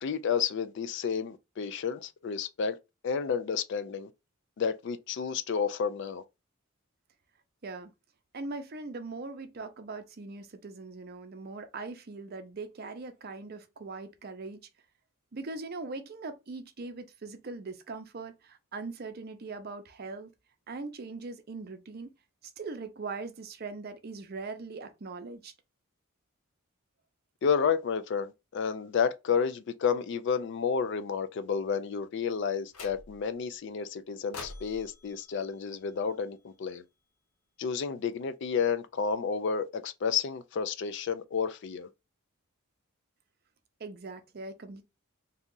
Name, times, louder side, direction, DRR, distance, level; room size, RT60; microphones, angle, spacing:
voice 1, 0.0-2.8 3.0-4.1 4.6-6.2 27.4-36.8 37.6-41.9, left 6 dB, 55° left, 0.3 m, -31 dB
voice 2, 8.3-14.6 15.3-20.3 20.7-22.1 22.6-25.5 43.8-44.8, right 3 dB, 45° right, 0.5 m, -41 dB
sound 1, 32.7-33.4 34.3-36.6, left 3 dB, 85° left, 0.7 m, -47 dB
2.7 x 2.4 x 3.7 m
head